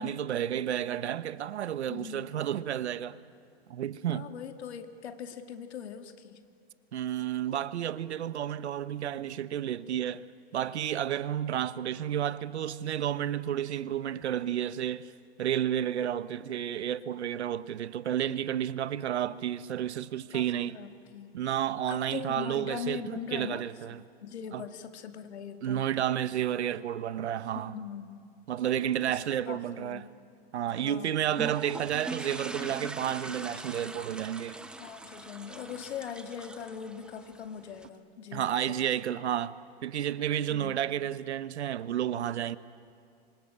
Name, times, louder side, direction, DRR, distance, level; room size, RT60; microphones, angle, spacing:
voice 1, 0.0-3.2 3.7-4.3 6.9-10.3 10.5-15.1 15.4-20.8 21.3-24.0 24.5-24.6 25.6-27.8 28.5-30.1 30.5-34.6 38.3-39.6 39.8-42.6, right 10 dB, 90° right, 1.1 m, -31 dB
voice 2, 1.9-2.3 4.1-6.4 20.3-21.3 21.9-23.6 24.2-25.9 27.5-28.2 29.0-29.2 29.5-30.1 30.7-31.2 34.8-38.7 40.5-40.8, left 8 dB, 80° left, 2.4 m, -41 dB
sound 1, 31.3-37.9, right 2 dB, 5° right, 0.9 m, -42 dB
26.5 x 23.5 x 8.7 m
hypercardioid pair, 150°, 33 cm